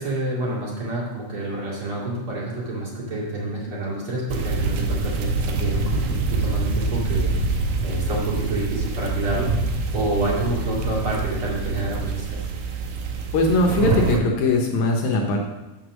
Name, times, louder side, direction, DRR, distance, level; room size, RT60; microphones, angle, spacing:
voice 1, 0.0-9.5 9.9-12.4, right 2 dB, 40° right, -5 dB, 2.9 m, -28 dB
sound 1, 4.3-14.2, right 3 dB, 75° right, 2.4 m, -25 dB
voice 2, 13.3-15.4, left 2 dB, 70° left, 1 dB, 2.0 m, -20 dB
7.5 x 6.6 x 6.1 m, 1.0 s
omnidirectional pair, 4.1 m